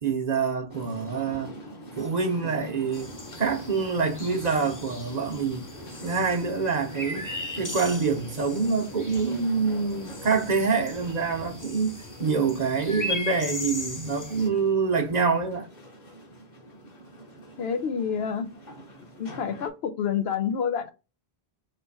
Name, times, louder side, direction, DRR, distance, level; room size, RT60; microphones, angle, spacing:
voice 1, 0.0-1.5 2.0-3.1 3.4-5.6 6.0-15.7, right 5 dB, 45° right, 0.8 m, -26 dB
sound 1, 0.7-19.7, equal, 45° left, 1.2 m, -44 dB
sound 2, 2.9-14.5, left 2 dB, 25° left, 0.6 m, -38 dB
voice 2, 17.6-18.5 19.2-20.9, left 7 dB, 80° left, 0.9 m, -28 dB
3.1 x 3.1 x 4.5 m
omnidirectional pair, 1.0 m